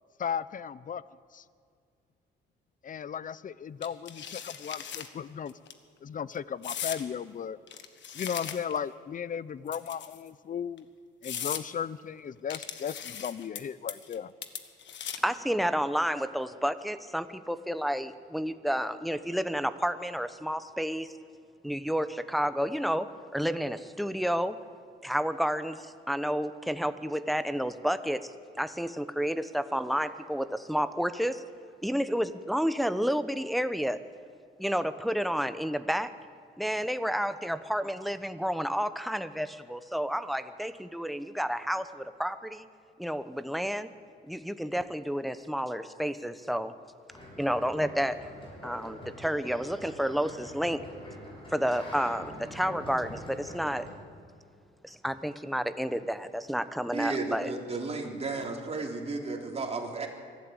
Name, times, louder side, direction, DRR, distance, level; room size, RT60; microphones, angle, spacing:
voice 1, 0.2-1.0 1.3-1.4 2.8-5.5 6.0-7.6 8.1-10.8 11.2-14.3, left 7 dB, 40° left, 18 dB, 0.7 m, -36 dB
sound 1, 3.8-5.1 5.5-5.7 6.6-7.0 7.7-8.8 9.7-10.3 10.8-10.9 11.2-11.6 12.5-13.6 13.9-14.2 14.4-15.4, left 8 dB, 65° left, 1.6 m, -38 dB
voice 2, 15.2-21.1 21.6-24.6 25.0-31.4 31.8-34.0 34.6-36.1 36.6-42.7 43.0-43.9 44.3-46.7 47.4-48.3 48.6-50.8 51.5-53.9 54.8-57.5, equal, ahead, 11 dB, 0.9 m, -30 dB
sound 2, 47.1-53.9, equal, 25° left, 7.9 m, -44 dB
voice 3, 56.9-60.1, right 3 dB, 30° right, 1 dB, 3.5 m, -33 dB
23.5 x 12.5 x 8.9 m, 2.1 s
cardioid pair, 90°, 20 cm